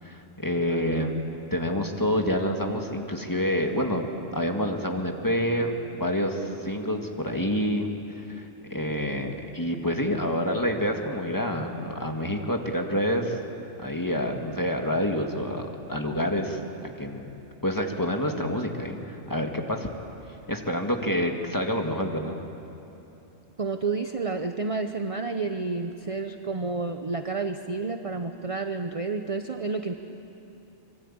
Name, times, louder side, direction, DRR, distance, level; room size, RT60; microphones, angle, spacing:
voice 1, 0.0-1.1 1.5-4.1 4.3-7.9 8.3-8.5 8.7-13.4 13.8-17.3 17.6-19.9 20.5-22.3, equal, 15° left, 2 dB, 1.8 m, -27 dB
voice 2, 0.7-1.1 21.0-21.1 23.6-29.9, right 4 dB, 30° right, 7 dB, 0.8 m, -30 dB
25.0 x 24.0 x 8.7 m, 2.9 s
omnidirectional pair, 1.4 m